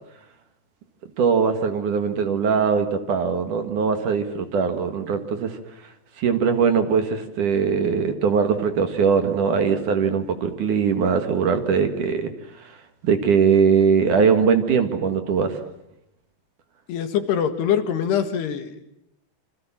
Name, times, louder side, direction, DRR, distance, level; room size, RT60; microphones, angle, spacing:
voice 1, 1.2-5.6 6.2-12.3 12.6-12.7 13.0-15.6, right 6 dB, 55° right, 8 dB, 2.9 m, -21 dB
voice 2, 16.9-18.8, left 8 dB, 80° left, 9 dB, 3.9 m, -23 dB
27.5 x 26.5 x 7.3 m, 0.81 s
omnidirectional pair, 4.7 m